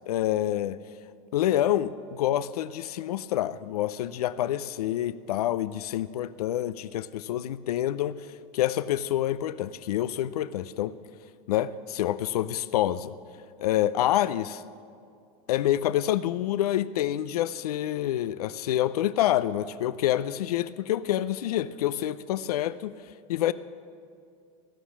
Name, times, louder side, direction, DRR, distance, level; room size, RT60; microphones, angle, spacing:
voice 1, 0.1-0.8 1.3-8.3 8.5-10.9 11.5-13.1 13.6-14.6 15.5-22.9 23.3-23.5, left 12 dB, 85° left, 15 dB, 0.5 m, -27 dB
16.5 x 11.5 x 7.3 m, 2.3 s
supercardioid pair, 115°, 19 cm